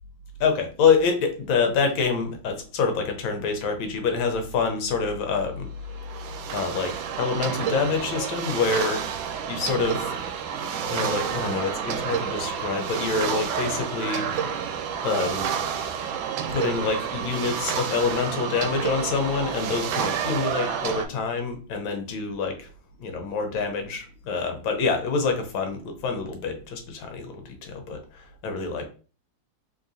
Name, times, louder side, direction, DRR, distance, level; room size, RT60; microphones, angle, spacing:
voice 1, 0.4-5.7 6.5-9.0 9.5-10.1 10.9-14.3 15.0-15.5 16.5-22.7 23.0-28.9, left 5 dB, 80° left, 5 dB, 1.6 m, -26 dB
sound 1, 5.8-21.0, right 7 dB, 80° right, 1.3 m, -29 dB
3.8 x 3.3 x 2.6 m, 0.38 s
omnidirectional pair, 2.1 m